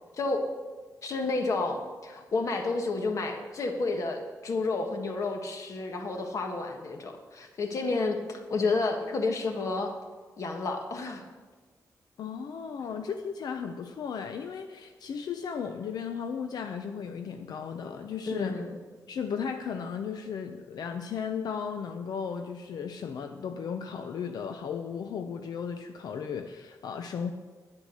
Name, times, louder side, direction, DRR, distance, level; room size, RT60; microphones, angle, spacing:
voice 1, 1.0-9.9 10.4-11.2 18.3-18.8, left 3 dB, 55° left, 4 dB, 1.6 m, -30 dB
voice 2, 12.2-18.6 19.1-27.3, left 6 dB, 90° left, 7 dB, 0.6 m, -35 dB
11.5 x 9.9 x 6.4 m, 1.4 s
wide cardioid pair, 165°, 7 cm